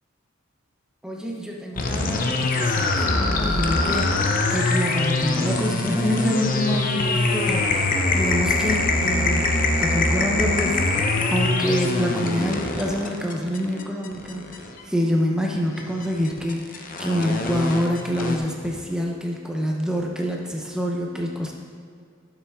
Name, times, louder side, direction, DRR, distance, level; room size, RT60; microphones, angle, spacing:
voice 1, 1.0-7.9 8.1-10.8 11.3-21.5, equal, 5° right, -1 dB, 0.8 m, -26 dB
sound 1, 1.8-14.8 15.7-18.4, left 2 dB, 45° left, 0.8 m, -23 dB
12.0 x 7.1 x 3.6 m, 2.2 s
head